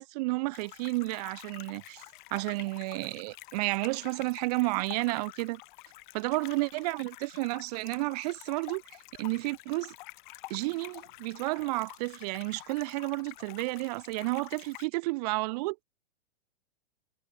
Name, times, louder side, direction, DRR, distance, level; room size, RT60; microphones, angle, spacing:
voice 1, 0.0-2.0 2.3-5.6 6.1-8.8 9.2-9.9 10.5-15.8, right 24 dB, 40° right, 0.5 m, -31 dB
sound 1, 0.5-14.9, left 20 dB, 50° left, 1.5 m, -49 dB
hypercardioid pair, 140°, 30 cm